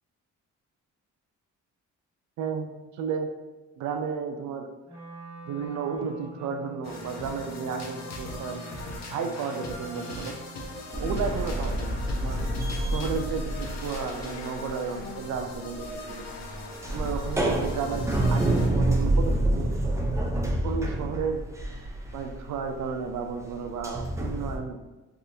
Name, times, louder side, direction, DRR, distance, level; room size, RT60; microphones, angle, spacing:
voice 1, 2.4-3.3 3.8-5.0 5.4-8.6 9.1-10.4 11.0-12.5 12.9-16.2 16.9-20.0 20.6-21.5 22.1-24.8, right 5 dB, 70° right, 6 dB, 0.5 m, -33 dB
Wind instrument woodwind instrument, 4.9-10.9, right 3 dB, 20° left, 1.0 m, -45 dB
sound 1, 6.8-18.8, left 2 dB, 60° left, 0.7 m, -40 dB
sound 2, 10.9-14.7 15.0-24.6, right 1 dB, 10° right, 0.4 m, -28 dB
3.5 x 2.4 x 2.7 m, 1.1 s
cardioid pair, 90°, 30 cm